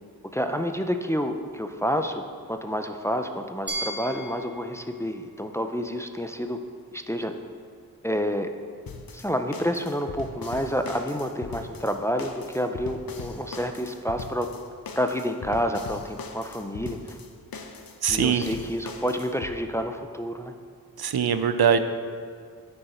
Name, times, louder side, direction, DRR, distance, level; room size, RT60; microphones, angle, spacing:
voice 1, 0.3-6.6 6.9-7.3 8.0-8.5 9.1-14.5 14.9-17.2 18.1-20.5, equal, 10° left, 6 dB, 0.5 m, -29 dB
Glass, 3.7-6.6, right 1 dB, 30° right, 1.2 m, -38 dB
sound 1, 8.9-19.6, left 4 dB, 65° left, 0.7 m, -40 dB
voice 2, 18.0-18.5 21.0-21.8, right 7 dB, 80° right, 9 dB, 0.5 m, -22 dB
9.5 x 5.5 x 4.3 m, 2.1 s
wide cardioid pair, 50°, 37 cm